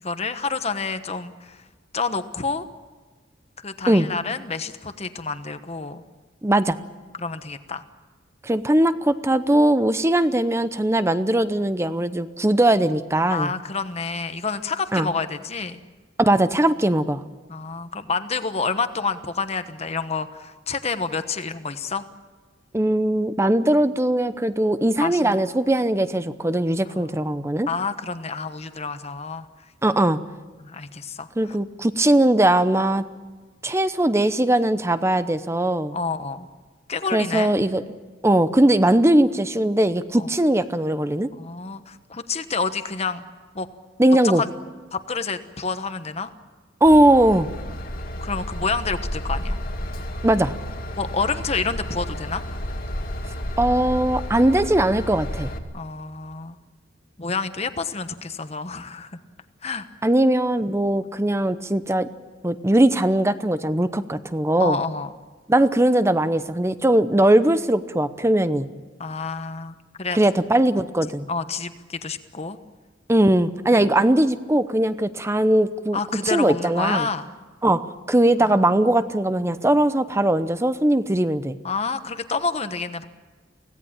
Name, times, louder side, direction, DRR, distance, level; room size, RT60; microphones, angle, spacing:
voice 1, 0.0-1.6 1.9-2.6 3.6-6.0 7.2-7.8 13.3-15.8 17.5-22.0 25.0-25.4 27.0-27.1 27.7-29.5 30.6-31.3 35.9-36.5 36.9-37.5 40.2-40.3 41.4-43.2 43.5-43.7 44.2-44.5 44.9-46.3 48.2-49.6 51.0-52.4 55.7-56.6 57.2-59.1 59.6-59.9 64.6-65.1 69.0-70.2 71.3-72.6 75.9-77.3 78.4-78.6 81.6-83.1, left 4 dB, 35° left, 10 dB, 1.2 m, -28 dB
voice 2, 6.4-6.8 8.4-13.5 14.9-15.1 16.2-17.2 22.7-27.7 29.8-30.2 31.4-33.0 33.6-36.0 37.1-37.8 38.2-41.3 44.0-44.4 46.8-47.5 50.2-50.5 53.6-55.5 60.0-62.1 62.4-64.8 65.5-68.7 70.1-71.3 73.1-77.1 77.6-81.6, right 1 dB, 15° right, 12 dB, 0.7 m, -20 dB
Train / Engine, 46.8-55.6, equal, 50° left, 2.1 m, -31 dB
25.0 x 17.0 x 8.8 m, 1.3 s
head